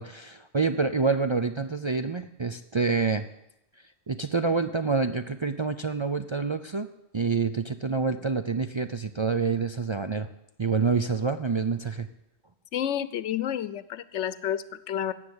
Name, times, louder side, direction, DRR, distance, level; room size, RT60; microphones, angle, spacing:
voice 1, 0.0-3.2 4.1-6.9 7.1-10.3 10.6-12.1, right 4 dB, 40° right, 7 dB, 0.4 m, -27 dB
voice 2, 12.7-15.1, left 10 dB, 85° left, 15 dB, 1.0 m, -30 dB
13.5 x 7.9 x 9.5 m, 0.84 s
omnidirectional pair, 1.2 m